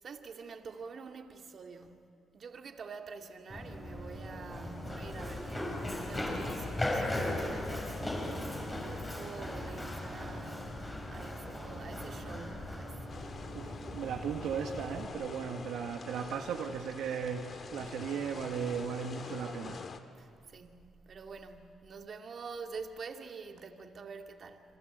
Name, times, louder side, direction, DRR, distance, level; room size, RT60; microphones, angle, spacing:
voice 1, 0.0-2.1 2.3-8.1 8.9-12.9 20.2-24.6, right 5 dB, 50° right, 2.2 m, -47 dB
Run, 3.5-15.0, left 1 dB, 20° left, 5.2 m, -38 dB
sound 1, 13.1-20.0, left 5 dB, 45° left, 1.9 m, -46 dB
voice 2, 13.5-19.8, right 7 dB, 80° right, 1.7 m, -37 dB
28.0 x 25.5 x 8.1 m
cardioid pair, 90°, 0 cm